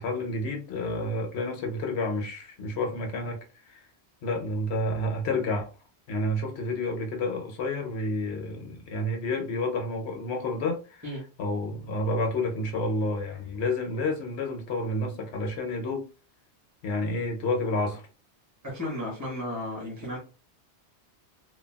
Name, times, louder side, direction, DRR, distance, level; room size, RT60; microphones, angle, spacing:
voice 1, 0.0-3.4 3.7-3.8 4.2-5.7 6.1-11.0 11.4-16.1 16.8-18.0, left 2 dB, 75° left, 0.9 m, -30 dB
voice 2, 18.6-20.2, left 1 dB, 15° right, 1.0 m, -34 dB
3.2 x 2.2 x 2.2 m
omnidirectional pair, 1.1 m